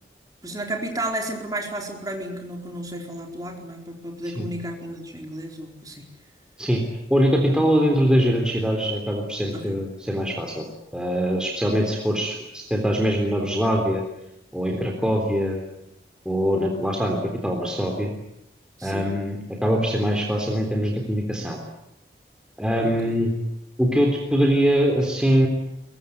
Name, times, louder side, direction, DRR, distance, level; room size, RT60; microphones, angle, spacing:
voice 1, 0.4-6.0 9.5-9.8 18.8-19.1 22.8-23.2, right 1 dB, 20° right, 2 dB, 4.4 m, -33 dB
voice 2, 7.1-10.6 10.9-14.0 14.5-15.6 16.3-18.1 18.8-21.6 22.6-23.3 23.8-25.5, equal, 5° right, 0 dB, 3.6 m, -22 dB
23.0 x 22.0 x 9.6 m, 0.83 s
head